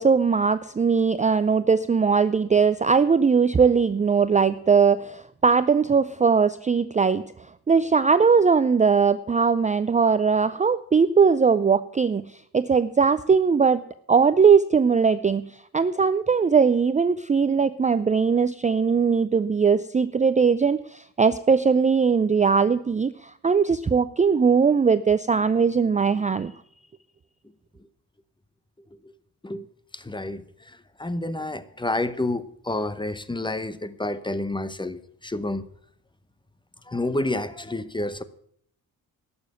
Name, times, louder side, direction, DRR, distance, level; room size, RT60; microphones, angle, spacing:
voice 1, 0.0-7.2 7.7-12.3 12.5-13.8 14.1-15.5 15.7-26.5, right 5 dB, 20° right, 0.4 m, -20 dB
voice 2, 29.9-30.4 31.0-35.6 36.9-38.2, left 2 dB, 10° left, 0.8 m, -29 dB
12.0 x 7.1 x 9.1 m
cardioid pair, 95°, 41 cm